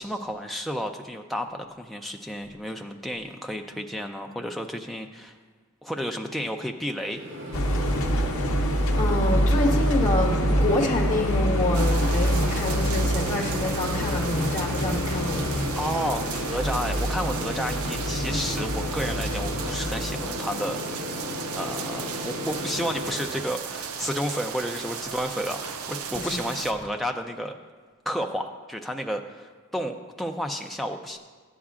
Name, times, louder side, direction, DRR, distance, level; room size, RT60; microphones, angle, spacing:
voice 1, 0.0-5.4 5.8-7.2 15.8-21.3 21.6-27.5 28.1-31.2, equal, ahead, 3 dB, 0.4 m, -31 dB
Microwave oven, 7.1-23.3, left 1 dB, 45° right, 2.2 m, -34 dB
sound 1, 7.5-20.2, equal, 65° left, 0.7 m, -26 dB
voice 2, 9.0-15.5 26.1-26.4, left 1 dB, 30° left, -3 dB, 1.4 m, -27 dB
sound 2, 11.7-26.7, right 6 dB, 75° right, 0.5 m, -36 dB
13.0 x 8.3 x 2.5 m, 1.5 s
head